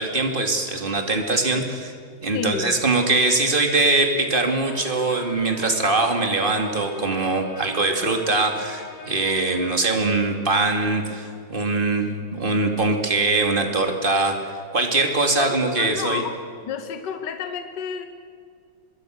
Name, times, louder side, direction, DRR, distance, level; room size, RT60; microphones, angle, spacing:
voice 1, 0.0-1.9 2.2-16.2, right 2 dB, 25° right, 4 dB, 2.5 m, -22 dB
voice 2, 2.3-2.7 15.4-16.3 16.6-18.0, left 6 dB, 60° left, 7 dB, 1.7 m, -30 dB
sound 1, 4.7-9.8, left 3 dB, 45° left, 2.1 m, -40 dB
25.0 x 22.0 x 6.6 m, 2.2 s
omnidirectional pair, 2.2 m